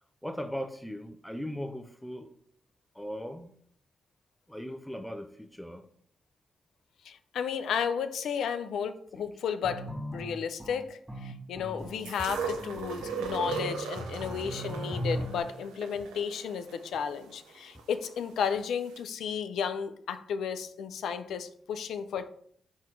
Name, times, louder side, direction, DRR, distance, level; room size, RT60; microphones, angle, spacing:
voice 1, 0.2-2.3 2.9-3.5 4.5-5.9 9.1-9.2, equal, 5° left, 5 dB, 0.7 m, -38 dB
voice 2, 7.0-22.3, left 7 dB, 75° left, 11 dB, 0.5 m, -33 dB
sound 1, 9.6-15.4, equal, 15° right, 1.3 m, -38 dB
sound 2, 12.0-18.1 19.0-19.1, right 5 dB, 90° right, 0.6 m, -38 dB
7.3 x 3.1 x 4.6 m, 0.63 s
hypercardioid pair, 40°, 0 cm